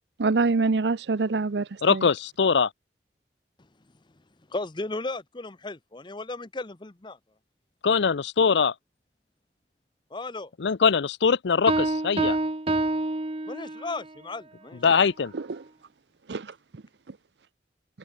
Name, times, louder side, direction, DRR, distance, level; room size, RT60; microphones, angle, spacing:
voice 1, 0.2-2.1 15.3-15.6 16.3-16.5, right 3 dB, 75° right, 0.6 m, -25 dB
voice 2, 1.8-2.7 7.8-8.7 10.6-12.4 14.8-15.3, left 5 dB, 85° left, 0.6 m, -22 dB
voice 3, 4.5-7.2 10.1-10.5 13.5-15.0, left 2 dB, 25° left, 0.8 m, -35 dB
Piano, 11.7-14.0, right 2 dB, 35° right, 1.1 m, -27 dB
head